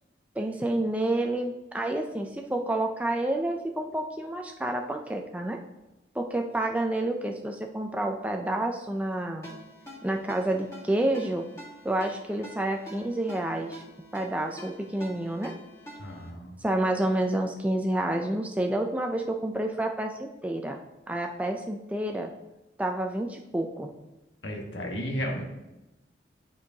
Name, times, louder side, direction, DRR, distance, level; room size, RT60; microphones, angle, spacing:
voice 1, 0.4-5.6 6.2-9.5 10.0-11.5 11.8-13.8 14.1-15.5 16.6-20.8 21.1-22.3 22.8-23.9, right 1 dB, 10° right, 3 dB, 0.4 m, -29 dB
Ringtone, 9.4-16.3, equal, 15° left, 2.1 m, -47 dB
voice 2, 16.0-16.6 24.4-25.4, equal, 80° left, 0 dB, 1.3 m, -33 dB
11.0 x 4.5 x 2.8 m, 0.96 s
head